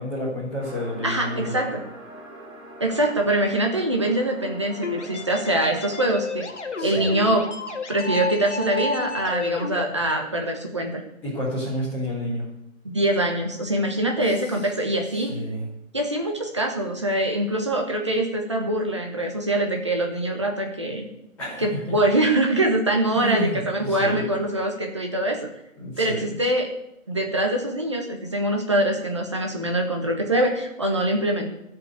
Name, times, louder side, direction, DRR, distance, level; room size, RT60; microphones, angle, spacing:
voice 1, 0.0-1.7 6.8-7.1 11.2-12.5 14.3-14.5 15.1-15.6 21.4-21.9 23.1-24.3 25.8-26.4, equal, 5° left, -12 dB, 2.0 m, -30 dB
sound 1, 0.6-6.2, right 1 dB, 50° right, 4.7 m, -43 dB
voice 2, 1.0-1.8 2.8-6.5 6.8-7.5 7.9-11.0 12.8-15.4 15.9-21.1 21.6-25.5 26.0-26.7 27.1-31.5, right 1 dB, 20° right, 2 dB, 1.1 m, -24 dB
sound 2, 4.8-9.9, left 3 dB, 55° left, 1.6 m, -31 dB
13.5 x 5.3 x 8.2 m, 0.81 s
hypercardioid pair, 180°, 41 cm